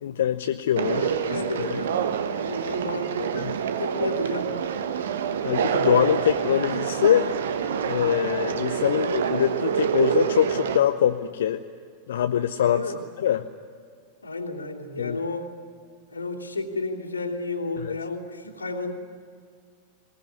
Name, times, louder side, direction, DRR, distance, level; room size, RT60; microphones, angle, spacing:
voice 1, 0.0-1.1 1.6-1.8 3.3-3.5 5.4-7.3 7.8-11.6 12.1-13.5 15.0-15.2 17.8-17.9, left 10 dB, 60° left, 8 dB, 0.7 m, -24 dB
Conversation, 0.8-10.8, right 7 dB, 60° right, 1.2 m, -27 dB
voice 2, 1.0-4.8 12.7-13.0 14.2-15.5 16.1-18.9, left 3 dB, 80° left, -4 dB, 2.8 m, -32 dB
20.5 x 20.5 x 9.8 m, 2.1 s
figure-of-eight pair, 90°, 0 cm